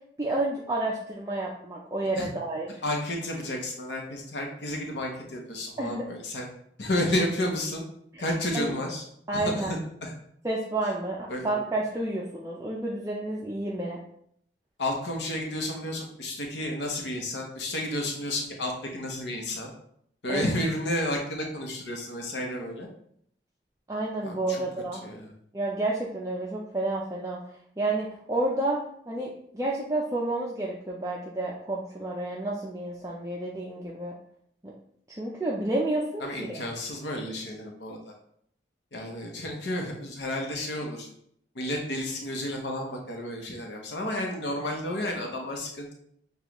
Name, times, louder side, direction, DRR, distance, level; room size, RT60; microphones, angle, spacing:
voice 1, 0.2-2.8 5.8-6.0 8.1-8.2 8.5-8.7 9.3-9.7 10.4-14.0 20.3-20.4 23.9-25.0 25.5-27.4 27.8-28.8 29.1-34.1 34.6-34.7 35.1-36.6, right 2 dB, 20° right, -3 dB, 0.4 m, -30 dB
voice 2, 2.8-6.5 6.8-7.8 8.2-9.0 9.3-9.7 10.0-10.1 11.3-11.5 14.8-19.7 20.2-22.9 24.2-24.6 25.0-25.3 36.2-38.0 38.9-41.1 41.5-45.9, left 1 dB, 85° left, 1 dB, 0.8 m, -31 dB
6.9 x 2.4 x 3.0 m, 0.69 s
head